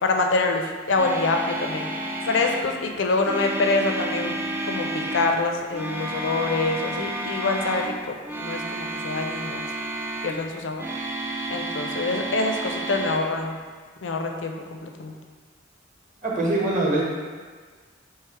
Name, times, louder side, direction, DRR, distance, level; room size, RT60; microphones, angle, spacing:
voice 1, 0.0-1.9 2.3-4.4 4.6-7.9 8.3-9.7 10.2-10.8 11.5-13.6 14.0-14.5 14.8-15.1, left 3 dB, 70° left, 3 dB, 0.5 m, -25 dB
sound 1, 1.0-2.7 3.2-5.3 5.7-8.0 8.2-10.4 10.8-13.2, right 1 dB, 10° right, 0.3 m, -31 dB
voice 2, 16.2-17.1, right 2 dB, 40° right, -4 dB, 1.0 m, -23 dB
3.3 x 3.1 x 4.6 m, 1.5 s
head